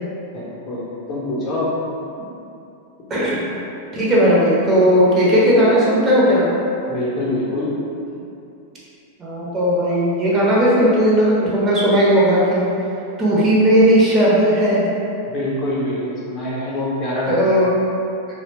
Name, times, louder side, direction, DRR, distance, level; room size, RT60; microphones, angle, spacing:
voice 1, 0.3-1.7 6.9-7.7 15.3-17.5, left 1 dB, 35° left, -7 dB, 0.6 m, -25 dB
voice 2, 3.1-3.4 3.9-6.5 9.2-12.7 13.2-14.9 17.3-17.7, equal, 25° right, -7 dB, 0.7 m, -16 dB
2.7 x 2.0 x 3.1 m, 2.7 s
figure-of-eight pair, 90°, 0 cm